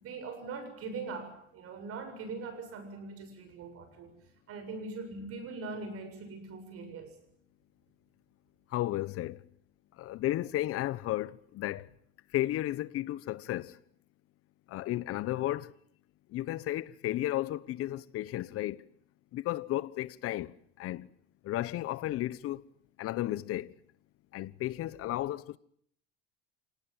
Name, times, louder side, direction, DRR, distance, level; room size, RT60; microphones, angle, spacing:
voice 1, 0.0-4.2 4.5-7.2, right 4 dB, 45° right, 7.6 m, -41 dB
voice 2, 8.7-9.4 10.0-11.9 12.3-13.8 14.7-15.7 16.3-18.8 19.3-21.1 21.4-22.6 23.0-23.7 24.3-25.6, left 15 dB, 45° left, 1.1 m, -33 dB
27.0 x 19.0 x 9.0 m
supercardioid pair, 120°, 31 cm